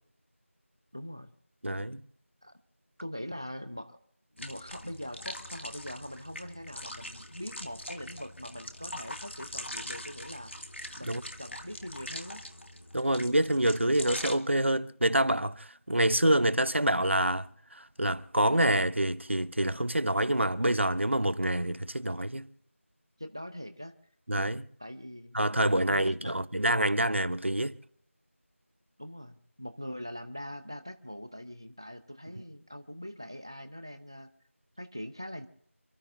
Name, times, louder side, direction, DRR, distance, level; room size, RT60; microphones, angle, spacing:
voice 1, 0.9-1.3 2.4-2.6 3.0-4.0 4.3-10.5 11.0-12.4 23.2-23.9 24.8-25.4 25.9-26.4 29.0-34.3 34.8-35.5, equal, 20° right, 0.7 m, -42 dB
voice 2, 1.6-2.0 11.0-11.2 12.9-22.5 24.3-24.7 25.3-27.8, right 1 dB, 60° right, 0.9 m, -27 dB
sound 1, 4.4-14.4, left 1 dB, 60° left, 2.0 m, -42 dB
29.0 x 13.0 x 2.6 m
figure-of-eight pair, 180°, 7 cm